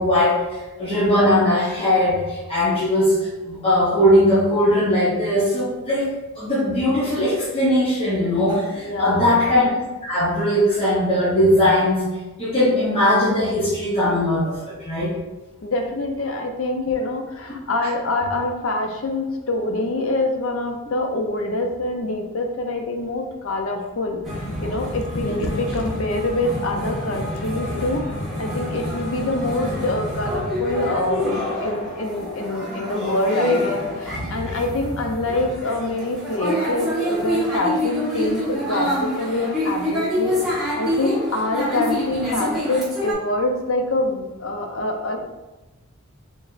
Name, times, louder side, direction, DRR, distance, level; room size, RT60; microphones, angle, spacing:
voice 1, 0.0-3.1 3.4-12.1 12.4-15.2 25.2-25.4, left 1 dB, 25° left, -10 dB, 0.9 m, -19 dB
voice 2, 8.8-9.4 15.6-45.2, left 2 dB, 65° left, 3 dB, 0.6 m, -25 dB
sound 1, 24.2-43.1, left 1 dB, ahead, 1.1 m, -27 dB
4.1 x 3.4 x 2.5 m, 1.1 s
head